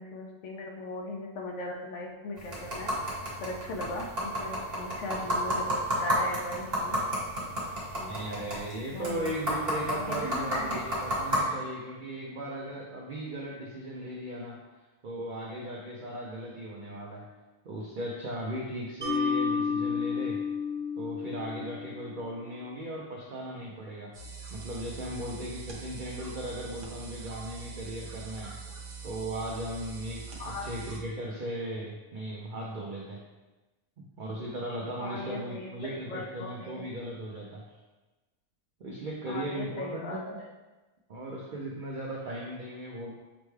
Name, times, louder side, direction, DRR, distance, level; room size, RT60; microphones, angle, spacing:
voice 1, 0.0-2.9 3.4-7.0 8.0-8.1 8.9-9.3 9.9-10.8 30.4-30.7 35.0-36.8 39.3-40.2, left 2 dB, 65° left, 0 dB, 0.8 m, -38 dB
sound 1, 2.4-11.4, equal, 45° right, 1.4 m, -32 dB
voice 2, 8.1-14.6 15.0-17.3 17.6-20.4 21.0-24.1 24.5-28.5 29.0-33.2 34.0-37.6 38.8-40.4 41.1-43.1, right 1 dB, 80° right, -3 dB, 0.4 m, -37 dB
Mallet percussion, 19.0-22.3, left 5 dB, 10° left, 0.8 m, -31 dB
sound 2, 24.1-31.0, right 5 dB, 60° right, 1.0 m, -43 dB
6.2 x 2.2 x 3.1 m, 1.2 s
omnidirectional pair, 1.5 m